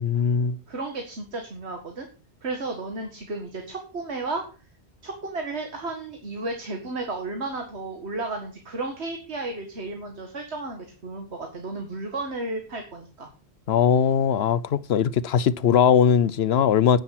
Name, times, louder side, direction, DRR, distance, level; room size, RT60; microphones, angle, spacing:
voice 1, 0.0-0.6 13.7-17.0, left 8 dB, 75° left, 1.0 m, -20 dB
voice 2, 0.7-2.1 2.4-4.4 5.0-13.3, right 2 dB, 85° right, 2.2 m, -33 dB
10.0 x 9.5 x 5.9 m
omnidirectional pair, 1.1 m